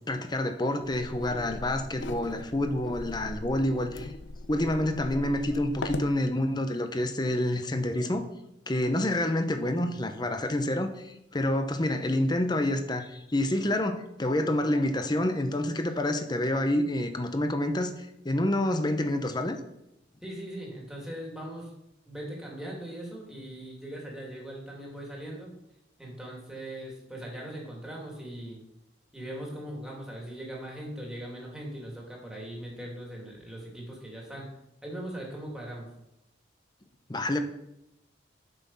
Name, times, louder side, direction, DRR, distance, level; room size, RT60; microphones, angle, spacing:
voice 1, 0.1-4.1 4.5-8.2 8.7-19.6 37.1-37.4, left 1 dB, 25° left, 7 dB, 0.8 m, -28 dB
sound 1, 0.8-6.2, left 2 dB, 80° left, 0.6 m, -39 dB
voice 2, 20.2-21.7 22.1-25.5 26.0-28.6 29.1-34.5 34.8-35.9, right 1 dB, 5° right, -3 dB, 2.5 m, -40 dB
8.1 x 6.2 x 5.5 m, 0.86 s
head